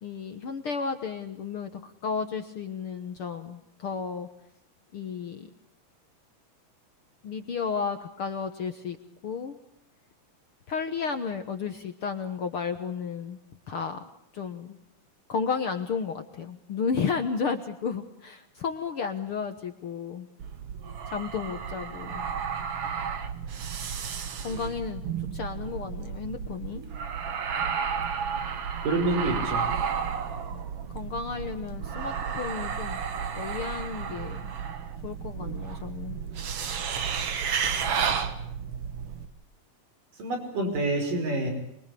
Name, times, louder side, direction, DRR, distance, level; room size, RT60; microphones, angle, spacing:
voice 1, 0.0-4.3 4.9-5.5 7.2-9.0 9.2-9.6 10.7-13.4 13.7-14.8 15.3-20.3 21.1-22.3 24.4-25.0 25.3-26.8 30.5-30.6 30.9-33.0 33.3-34.5 35.0-36.2, left 5 dB, 55° left, 8 dB, 1.5 m, -33 dB
sound 1, 20.4-39.3, right 7 dB, 50° right, 2.2 m, -32 dB
voice 2, 28.8-29.7 40.2-41.5, right 2 dB, 70° right, 5 dB, 7.0 m, -27 dB
26.0 x 23.0 x 8.4 m, 0.73 s
omnidirectional pair, 4.0 m